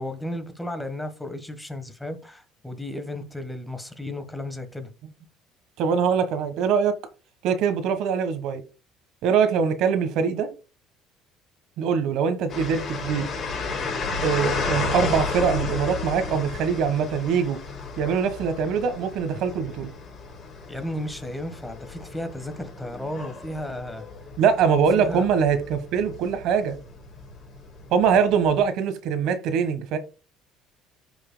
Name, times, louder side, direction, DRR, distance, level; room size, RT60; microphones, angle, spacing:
voice 1, 0.0-4.9 20.7-24.0 24.9-25.2, left 1 dB, 5° left, 1.3 m, -34 dB
voice 2, 5.8-6.9 7.4-8.6 9.2-10.5 11.8-13.3 14.2-17.6 18.0-19.9 24.4-26.8 27.9-30.0, right 6 dB, 70° right, 1.3 m, -23 dB
sound 1, 12.5-28.6, left 4 dB, 35° left, 4.8 m, -33 dB
14.5 x 5.6 x 2.2 m
cardioid pair, 130°, 0 cm